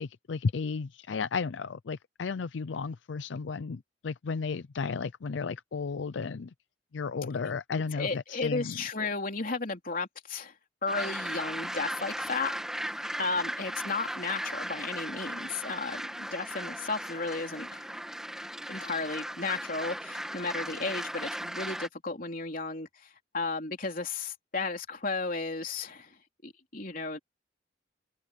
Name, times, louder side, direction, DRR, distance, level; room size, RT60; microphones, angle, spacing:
voice 1, 0.0-6.5 6.9-8.8, left 5 dB, 80° left, 0.5 m, -33 dB
voice 2, 7.9-10.5 10.8-12.5 13.2-17.8 18.7-23.1 23.3-26.1 26.4-27.2, left 3 dB, 50° left, 3.4 m, -34 dB
sound 1, 10.9-21.9, equal, 5° right, 1.4 m, -37 dB
head